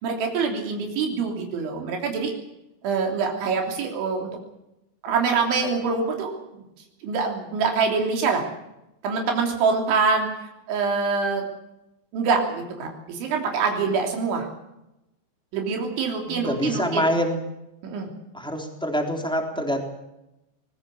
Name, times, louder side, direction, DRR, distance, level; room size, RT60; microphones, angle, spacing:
voice 1, 0.0-2.3 2.8-4.3 5.0-6.6 7.0-8.4 9.0-10.3 10.7-11.4 12.1-14.5 15.5-17.1 17.8-18.1, right 5 dB, 90° right, 2 dB, 5.6 m, -25 dB
voice 2, 16.3-17.4 18.3-19.8, equal, ahead, 2 dB, 2.6 m, -25 dB
24.0 x 20.0 x 6.9 m, 0.91 s
omnidirectional pair, 5.2 m